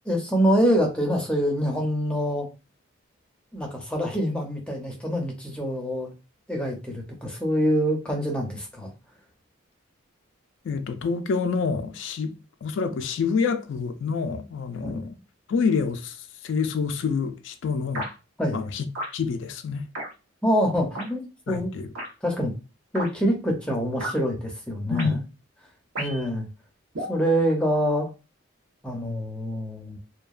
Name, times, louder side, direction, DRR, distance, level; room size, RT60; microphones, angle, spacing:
voice 1, 0.1-2.5 3.5-6.1 6.5-8.9 14.8-15.0 18.4-18.6 20.4-21.7 22.2-22.5 22.9-25.2 26.0-26.5 27.1-28.1 28.8-30.0, equal, 5° left, 0.5 m, -25 dB
voice 2, 10.6-15.2 15.5-18.1 18.5-18.9 19.1-19.9 21.5-21.9 24.9-25.2, left 5 dB, 60° left, 0.3 m, -27 dB
sound 1, 17.9-18.1 18.9-19.1 19.9-20.1 20.9-21.1 21.9-22.1 22.9-23.1 24.0-24.2 24.9-25.1 26.0-26.3 26.9-27.2, right 1 dB, 80° right, 1.0 m, -32 dB
2.7 x 2.2 x 2.3 m
head